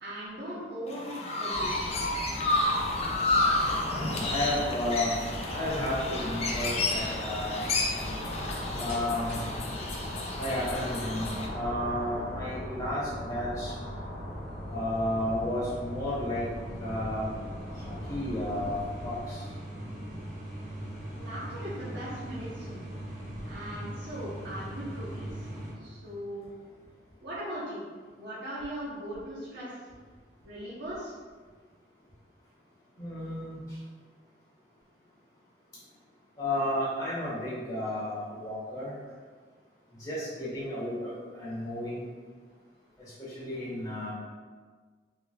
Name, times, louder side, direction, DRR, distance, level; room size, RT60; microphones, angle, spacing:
voice 1, 0.0-1.7 21.2-22.9 23.4-25.5 25.8-26.6 27.2-27.9 28.2-29.8 30.4-31.1, equal, 80° right, -10 dB, 0.8 m, -39 dB
Chirp tweet, 0.9-11.5, left 2 dB, 35° left, 0.4 m, -31 dB
sound 1, 1.5-19.2, left 1 dB, 60° right, 1.5 m, -39 dB
voice 2, 3.9-5.2 5.5-8.1 8.8-9.4 10.4-13.7 14.7-16.5 16.8-17.3 18.1-19.4 33.0-33.6 36.4-38.9 40.0-42.0 43.3-44.1, left 1 dB, 20° left, -8 dB, 1.3 m, -32 dB
sound 2, 8.9-25.7, right 1 dB, 35° right, 1.2 m, -42 dB
3.5 x 3.3 x 2.2 m, 1.5 s
head